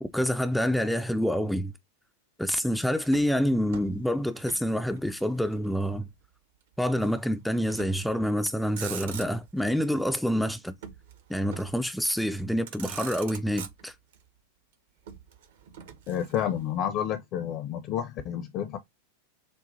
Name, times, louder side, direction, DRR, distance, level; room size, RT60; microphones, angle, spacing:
voice 1, 0.0-1.7 2.4-6.1 6.8-10.8 11.3-13.9, equal, ahead, 0.4 m, -27 dB
Motor vehicle (road), 3.1-4.7 5.0-6.0 7.0-7.3 7.7-8.1 8.6-9.6 10.8-11.9 12.4-12.5 12.7-14.2 15.1-16.7, right 8 dB, 55° right, 0.9 m, -43 dB
voice 2, 16.1-18.8, left 9 dB, 40° left, 0.7 m, -30 dB
6.9 x 2.4 x 2.6 m
figure-of-eight pair, 90°, 0 cm